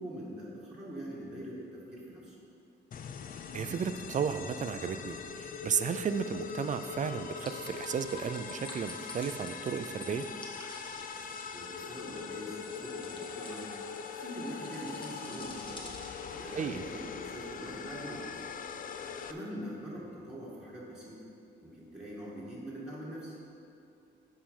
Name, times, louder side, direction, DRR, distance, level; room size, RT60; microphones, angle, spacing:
voice 1, 0.0-2.4 11.3-15.8 16.3-18.4 19.0-21.2 21.6-23.4, equal, 5° right, -8 dB, 2.1 m, -43 dB
sound 1, 2.9-19.3, left 6 dB, 45° left, 0.5 m, -42 dB
voice 2, 3.5-10.3 16.5-16.8, right 7 dB, 40° right, 10 dB, 0.5 m, -34 dB
sound 2, 7.4-16.6, left 1 dB, 25° left, 1.4 m, -50 dB
8.8 x 4.9 x 5.7 m, 2.6 s
cardioid pair, 90°, 20 cm